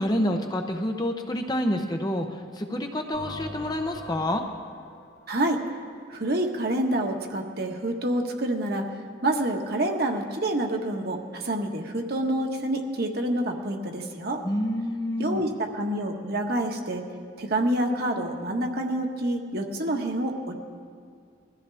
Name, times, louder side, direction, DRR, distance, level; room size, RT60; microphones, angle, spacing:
voice 1, 0.0-4.4 14.4-15.4, left 1 dB, 20° left, 4 dB, 0.8 m, -28 dB
sound 1, 3.1-6.8, left 1 dB, 55° left, 1.8 m, -43 dB
voice 2, 5.3-5.6 6.1-8.8 9.2-14.4 15.2-17.0 17.4-20.5, right 1 dB, 50° right, 2 dB, 1.5 m, -27 dB
21.5 x 14.5 x 3.5 m, 2.2 s
head